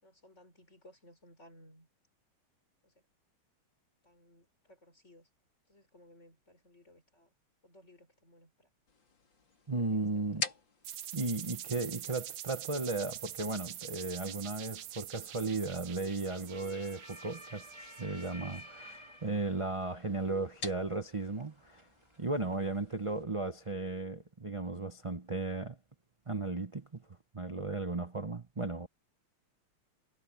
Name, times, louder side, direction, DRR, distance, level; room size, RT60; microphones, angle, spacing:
voice 1, 0.0-1.9 2.8-3.0 4.0-5.3 5.7-7.3 7.6-8.7 9.8-10.5, left 1 dB, 30° left, 6.5 m, -60 dB
sound 1, 8.9-23.2, left 4 dB, 60° left, 3.5 m, -49 dB
voice 2, 9.7-10.4 11.1-21.9 22.2-25.8 26.3-27.1 27.3-28.9, right 3 dB, 30° right, 0.5 m, -35 dB
sound 2, 10.8-18.6, right 11 dB, 65° right, 1.1 m, -45 dB
sound 3, 12.5-23.7, equal, 15° right, 2.2 m, -56 dB
omnidirectional pair, 2.3 m